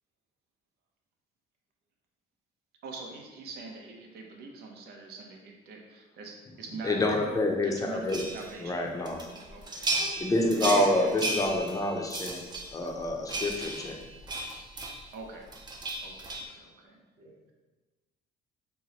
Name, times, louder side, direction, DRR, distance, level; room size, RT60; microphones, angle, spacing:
voice 1, 2.8-7.0 7.6-8.8 9.5-9.9 10.6-10.9 15.1-15.5 16.0-17.0, right 3 dB, 75° right, 2 dB, 0.8 m, -44 dB
voice 2, 6.8-8.2 8.6-9.4 9.9-12.4 12.7-14.0, left 1 dB, 20° left, 2 dB, 0.6 m, -28 dB
sound 1, 8.1-8.5 9.1-15.2 15.5-16.4, right 2 dB, 25° right, 0.6 m, -35 dB
voice 3, 10.6-11.2 17.2-17.5, right 2 dB, 40° right, -2 dB, 1.0 m, -40 dB
4.4 x 2.2 x 4.0 m, 1.2 s
cardioid pair, 110°, 17 cm